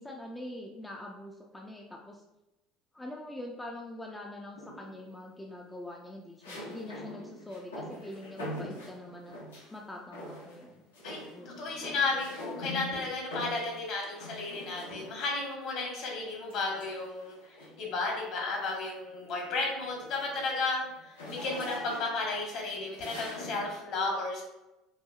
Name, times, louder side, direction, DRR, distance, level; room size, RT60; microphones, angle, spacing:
voice 1, 0.0-2.2 2.9-10.8 11.3-11.5, left 1 dB, 10° left, 0 dB, 0.5 m, -44 dB
sound 1, 4.6-5.1 6.4-9.8 10.1-10.7 10.9-15.4 16.5-17.9 18.4-18.7 19.0-23.8, left 1 dB, 75° left, 0.9 m, -43 dB
voice 2, 11.4-24.4, left 3 dB, 50° left, -1 dB, 1.3 m, -33 dB
5.5 x 2.6 x 2.4 m, 0.97 s
figure-of-eight pair, 65°, 0 cm